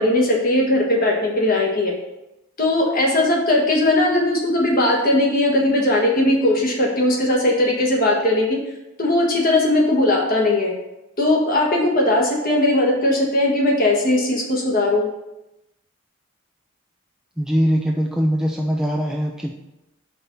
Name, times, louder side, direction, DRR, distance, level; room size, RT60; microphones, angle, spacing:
voice 1, 0.0-1.9 2.6-8.6 9.0-10.7 11.2-15.0, left 1 dB, 45° left, -1 dB, 1.5 m, -19 dB
voice 2, 17.4-19.5, equal, 5° right, 1 dB, 0.3 m, -21 dB
5.2 x 4.2 x 5.9 m, 0.94 s
head